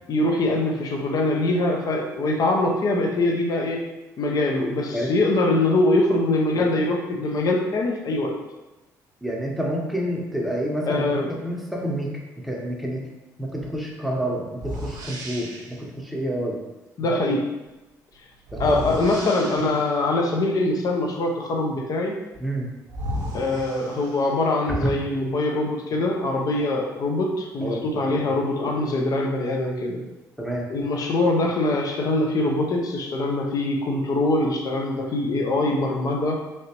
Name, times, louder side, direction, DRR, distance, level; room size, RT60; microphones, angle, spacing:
voice 1, 0.1-3.8 4.2-8.3 10.9-11.3 17.0-17.4 18.6-22.2 23.3-30.0 30.7-36.4, left 2 dB, 55° left, 2 dB, 0.6 m, -23 dB
voice 2, 9.2-11.1 11.4-12.1 12.4-13.0 13.4-16.6 17.1-17.2 18.5-18.8 22.4-22.7 24.7-24.9 27.6-28.2 30.4-30.7, equal, ahead, -2 dB, 0.8 m, -28 dB
sound 1, 13.6-13.8 14.6-15.8 18.5-20.1 22.3-22.4 22.9-24.5, equal, 55° right, 0.7 m, -34 dB
3.2 x 2.8 x 2.9 m, 1.1 s
supercardioid pair, 65°, 8 cm